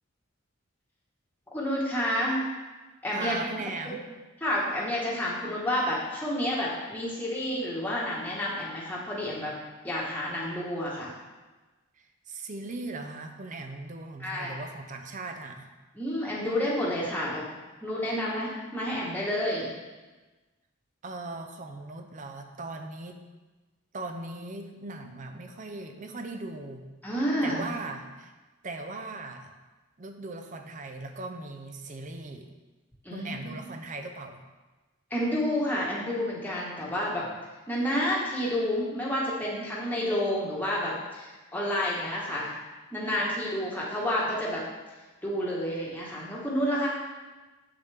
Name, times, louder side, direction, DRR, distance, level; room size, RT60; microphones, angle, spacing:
voice 1, 1.5-2.4 3.0-3.4 4.4-9.5 9.8-11.1 14.2-14.5 15.9-17.5 17.8-19.7 27.0-27.7 33.0-33.6 35.1-37.3 37.7-42.5 42.9-44.6 45.2-46.9, left 1 dB, 10° left, -6 dB, 1.3 m, -29 dB
voice 2, 3.1-4.1 12.0-15.7 21.0-23.2 23.9-26.9 27.4-28.3 28.6-29.5 30.0-32.5 33.1-34.4, right 2 dB, 35° right, 6 dB, 0.5 m, -39 dB
7.2 x 6.8 x 3.4 m, 1.2 s
head